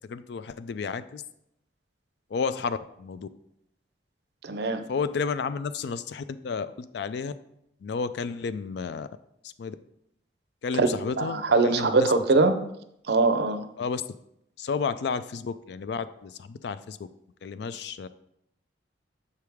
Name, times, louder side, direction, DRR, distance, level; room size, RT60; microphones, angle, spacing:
voice 1, 0.1-1.2 2.3-3.3 4.9-7.3 7.8-9.1 9.4-9.8 10.6-12.1 13.8-14.0 14.6-17.0 17.4-18.1, left 5 dB, 65° left, 14 dB, 0.3 m, -32 dB
voice 2, 4.4-4.9 10.8-10.9 11.1-12.6 13.1-13.7, right 3 dB, 65° right, 9 dB, 0.5 m, -22 dB
6.7 x 4.8 x 3.5 m, 0.78 s
head